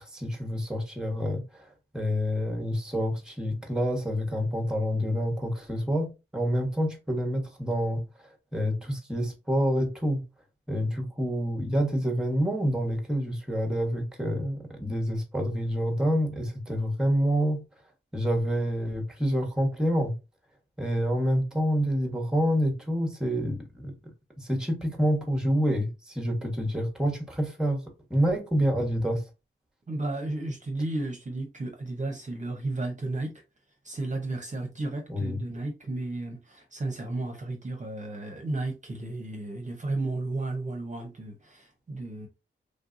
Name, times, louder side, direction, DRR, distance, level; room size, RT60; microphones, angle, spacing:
voice 1, 0.0-10.2 10.7-17.7 18.1-20.1 20.8-23.9 24.4-27.8 28.1-29.3 35.1-35.4, equal, 5° right, 1.2 m, -27 dB
voice 2, 29.9-33.3 33.8-42.3, right 2 dB, 35° right, 0.8 m, -33 dB
3.3 x 2.6 x 2.5 m
cardioid pair, 55°, 20 cm